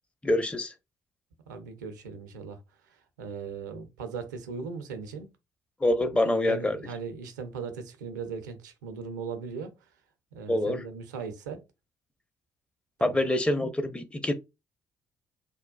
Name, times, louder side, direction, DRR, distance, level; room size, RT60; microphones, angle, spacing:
voice 1, 0.2-0.7 5.8-6.8 10.5-10.8 13.0-14.3, left 1 dB, 10° left, 0.5 m, -25 dB
voice 2, 1.5-2.6 3.2-5.3 6.2-9.7 10.3-11.6 13.0-13.2, right 5 dB, 75° right, 0.5 m, -38 dB
3.1 x 2.2 x 2.2 m
figure-of-eight pair, 45°, 10 cm